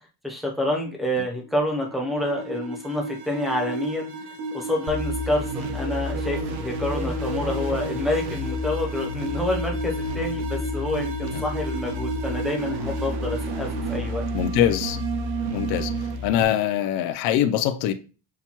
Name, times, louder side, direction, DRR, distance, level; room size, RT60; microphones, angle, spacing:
voice 1, 0.2-4.1 4.5-14.3, left 1 dB, ahead, 0.6 m, -28 dB
sound 1, 1.4-16.2, right 3 dB, 85° right, 1.2 m, -32 dB
sound 2, 4.9-16.4, left 3 dB, 45° right, 0.7 m, -32 dB
voice 2, 14.3-15.0 15.5-15.9 16.2-17.9, left 11 dB, 50° left, 0.5 m, -23 dB
5.7 x 2.2 x 2.9 m
cardioid pair, 150°, 50 cm